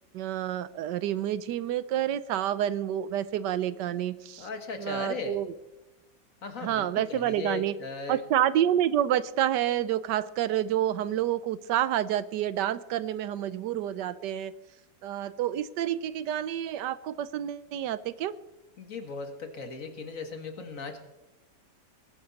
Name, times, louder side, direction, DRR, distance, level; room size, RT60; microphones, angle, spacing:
voice 1, 0.1-4.5 4.8-5.5 6.6-7.7 8.1-14.5 15.0-18.3, right 11 dB, 85° right, 16 dB, 1.3 m, -28 dB
voice 2, 4.4-5.4 6.4-8.2 18.8-21.0, left 4 dB, 50° left, 6 dB, 1.9 m, -37 dB
20.5 x 10.0 x 4.1 m, 1.0 s
omnidirectional pair, 1.8 m